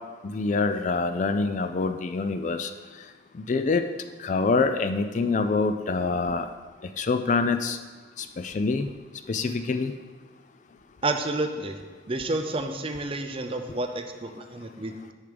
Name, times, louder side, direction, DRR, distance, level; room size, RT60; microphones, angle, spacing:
voice 1, 0.2-2.7 3.5-3.8 4.2-6.5 7.0-7.8 8.2-8.9 9.3-9.9, left 4 dB, 40° left, 8 dB, 0.3 m, -25 dB
voice 2, 11.0-11.8 12.1-15.1, right 2 dB, 25° right, 6 dB, 0.6 m, -30 dB
7.3 x 6.7 x 5.1 m, 1.4 s
head